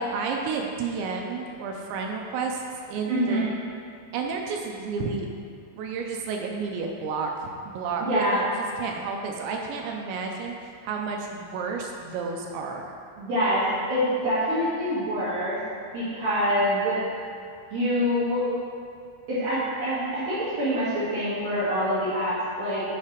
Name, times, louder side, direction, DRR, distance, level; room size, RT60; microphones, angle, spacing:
voice 1, 0.0-2.6 2.9-3.4 4.1-5.3 5.7-8.4 8.8-10.5 10.8-12.9, right 4 dB, 80° right, 1 dB, 2.7 m, -31 dB
voice 2, 3.1-3.5 8.0-8.4 13.2-15.6 15.9-17.0 17.7-18.4 19.3-22.8, equal, 60° right, -12 dB, 2.8 m, -25 dB
9.6 x 3.3 x 5.0 m, 2.3 s
omnidirectional pair, 5.5 m